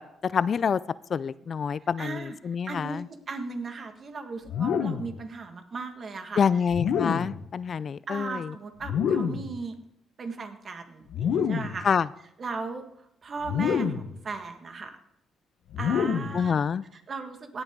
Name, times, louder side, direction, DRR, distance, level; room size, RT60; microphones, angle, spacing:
voice 1, 0.2-0.8 1.1-3.1 6.4-8.5 11.8-12.1 16.3-16.8, left 6 dB, 50° left, 19 dB, 0.3 m, -26 dB
voice 2, 2.0-2.4 2.7-6.4 8.1-9.7 10.2-11.9 12.4-12.8 13.2-15.0 15.8-16.6 16.9-17.6, right 4 dB, 45° right, 6 dB, 1.6 m, -37 dB
sound 1, 4.5-5.2 6.7-7.4 8.8-9.6 11.1-11.8 13.4-14.2 15.7-16.5, left 7 dB, 75° left, 1.1 m, -27 dB
17.0 x 7.9 x 3.7 m, 0.77 s
cardioid pair, 90°, 0 cm